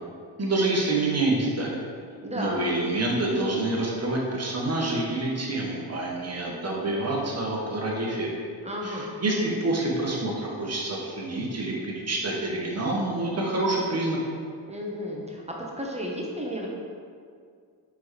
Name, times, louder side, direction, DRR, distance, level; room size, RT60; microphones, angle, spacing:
voice 1, 0.4-1.8 2.3-8.3 8.8-14.2, right 2 dB, 35° right, -2 dB, 1.1 m, -27 dB
voice 2, 2.2-2.6 8.6-9.1 14.7-15.4 15.8-16.7, equal, 15° right, -2 dB, 0.8 m, -33 dB
4.3 x 3.5 x 3.0 m, 2.2 s
supercardioid pair, 60°, 45 cm